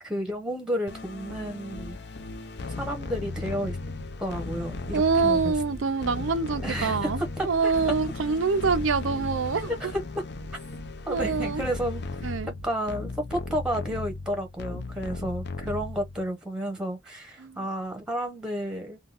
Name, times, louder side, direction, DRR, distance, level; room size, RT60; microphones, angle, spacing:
voice 1, 0.0-2.0 2.7-3.8 4.2-5.5 6.6-7.7 9.7-10.2 11.1-12.3 12.6-19.0, equal, 5° right, 0.9 m, -31 dB
sound 1, 0.9-16.3, left 3 dB, 55° left, 0.6 m, -36 dB
voice 2, 4.9-9.7 11.1-11.6 12.2-12.5 17.4-17.6, right 4 dB, 70° right, 0.5 m, -25 dB
3.5 x 2.3 x 2.5 m
head